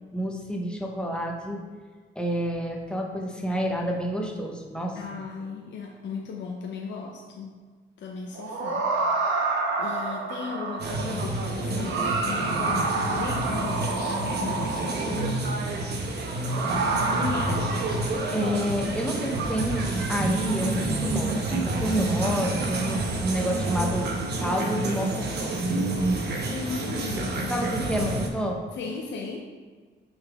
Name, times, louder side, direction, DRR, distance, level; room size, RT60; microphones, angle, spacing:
voice 1, 0.1-1.6 2.2-5.0 18.3-24.1 24.4-25.6 27.5-28.6, equal, 5° left, 0 dB, 1.0 m, -29 dB
voice 2, 4.9-7.6 8.0-8.9 9.8-15.6 16.7-17.8 26.5-28.0 28.7-29.4, left 5 dB, 65° left, 0 dB, 0.7 m, -36 dB
sound 1, 8.3-11.1 11.7-15.5 16.4-18.3 19.3-19.5, right 3 dB, 80° right, 1.0 m, -28 dB
sound 2, 10.8-28.3, right 2 dB, 55° right, 1.0 m, -29 dB
6.4 x 4.0 x 3.6 m, 1.5 s
cardioid pair, 90°, 20 cm